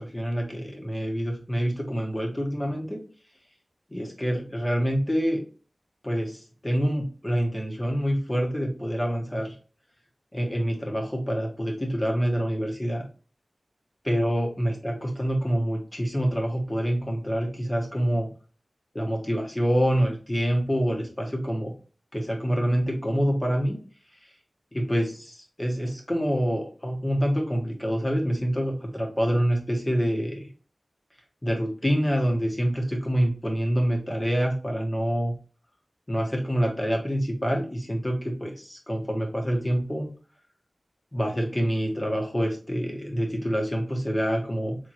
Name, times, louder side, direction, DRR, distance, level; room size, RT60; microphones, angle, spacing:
voice 1, 0.0-3.0 3.9-5.4 6.0-9.5 10.3-13.0 14.0-18.3 18.9-21.7 22.1-23.8 24.7-30.5 31.4-35.3 36.1-40.1 41.1-44.8, equal, 20° left, 1 dB, 1.4 m, -26 dB
4.6 x 3.5 x 3.0 m, 0.37 s
wide cardioid pair, 65°, 0 cm